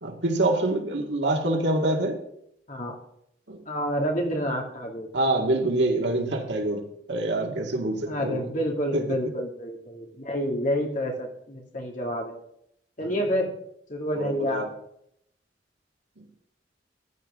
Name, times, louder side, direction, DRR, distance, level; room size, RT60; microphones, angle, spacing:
voice 1, 0.0-2.2 3.5-3.6 5.1-8.5 8.9-9.2 13.0-13.2 14.1-14.7 16.2-16.3, right 2 dB, 75° right, 2 dB, 2.0 m, -26 dB
voice 2, 3.7-5.1 8.1-12.4 13.0-13.5 13.9-14.7, equal, 45° left, 0 dB, 2.4 m, -28 dB
15.0 x 10.5 x 3.7 m, 0.73 s
head